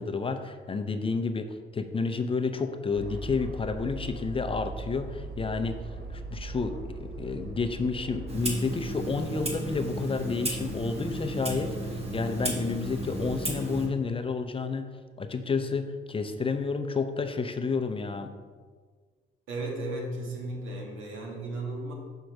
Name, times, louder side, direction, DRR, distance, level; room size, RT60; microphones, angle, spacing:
voice 1, 0.0-5.8 6.1-14.9 15.2-18.3, left 4 dB, 25° left, 7 dB, 0.5 m, -30 dB
Aircraft, 2.9-8.6, right 2 dB, 55° right, 1.0 m, -39 dB
Clock, 8.3-13.9, right 1 dB, 30° right, 1.5 m, -33 dB
voice 2, 19.5-21.9, right 2 dB, 80° right, -1 dB, 1.6 m, -35 dB
6.4 x 4.5 x 4.7 m, 1.5 s
cardioid pair, 90°, 20 cm